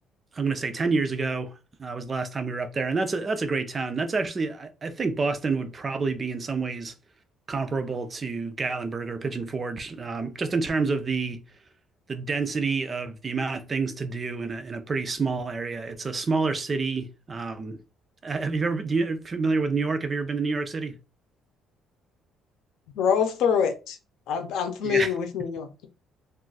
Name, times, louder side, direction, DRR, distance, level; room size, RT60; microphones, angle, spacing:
voice 1, 0.3-6.9 7.5-11.4 12.1-17.8 18.2-21.0 24.8-25.1, right 4 dB, 25° right, 0.3 m, -28 dB
voice 2, 23.0-24.0 24.3-25.9, left 7 dB, 70° left, 0.6 m, -25 dB
2.4 x 2.4 x 3.8 m
cardioid pair, 165°, 0 cm